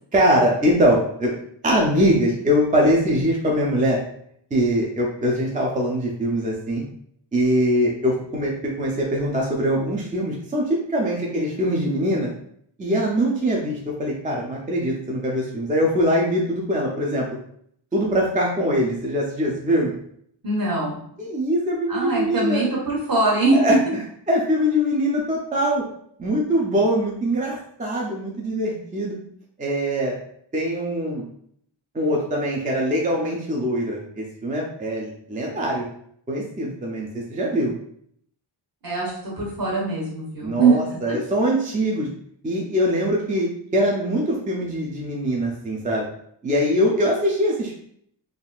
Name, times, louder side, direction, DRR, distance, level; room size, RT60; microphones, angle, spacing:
voice 1, 0.1-1.4 1.6-4.0 4.5-6.8 7.3-12.3 12.8-17.3 17.9-19.9 21.2-22.7 23.5-23.7 24.3-25.8 26.2-29.2 29.6-30.1 30.5-31.2 31.9-35.8 36.3-37.7 40.4-42.1 42.4-46.1 46.4-47.7, equal, 20° right, -2 dB, 0.3 m, -22 dB
voice 2, 20.4-21.0 21.9-23.6 38.8-40.8, right 3 dB, 50° right, -4 dB, 1.1 m, -22 dB
3.5 x 2.4 x 2.2 m, 0.68 s
wide cardioid pair, 170°, 45 cm